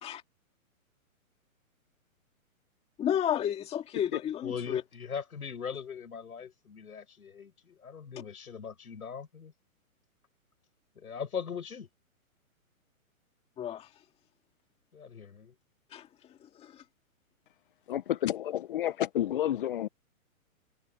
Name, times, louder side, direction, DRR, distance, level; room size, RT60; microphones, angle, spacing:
voice 1, 3.0-4.8 13.6-13.9 15.9-16.8 18.9-19.0, left 10 dB, 15° left, 2.0 m, -32 dB
voice 2, 4.4-9.5 11.0-11.9 14.9-15.5, left 6 dB, 90° left, 7.3 m, -40 dB
voice 3, 17.9-19.9, left 12 dB, 40° left, 0.6 m, -30 dB
hypercardioid pair, 150°, 43 cm